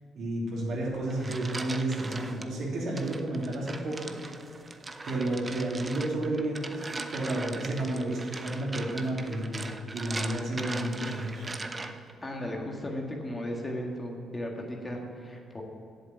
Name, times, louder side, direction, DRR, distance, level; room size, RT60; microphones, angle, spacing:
voice 1, 0.1-4.1 5.0-6.8 7.1-11.5, right 1 dB, 65° right, -3 dB, 3.0 m, -31 dB
sound 1, 0.9-2.5 3.0-12.2, right 3 dB, 25° right, 0.6 m, -40 dB
voice 2, 12.2-15.6, left 1 dB, 20° left, 0 dB, 1.7 m, -36 dB
8.0 x 7.1 x 8.3 m, 2.5 s
cardioid pair, 90°, 0 cm